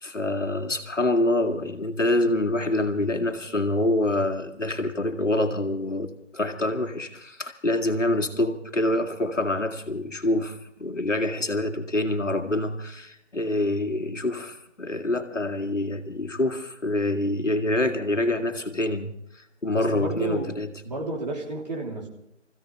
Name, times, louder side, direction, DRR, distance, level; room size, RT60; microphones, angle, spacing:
voice 1, 0.0-20.7, left 1 dB, 75° left, 4 dB, 2.2 m, -26 dB
voice 2, 19.7-20.5 20.8-22.1, right 2 dB, 35° right, -1 dB, 3.3 m, -31 dB
25.5 x 16.0 x 3.4 m, 0.75 s
figure-of-eight pair, 155°, 37 cm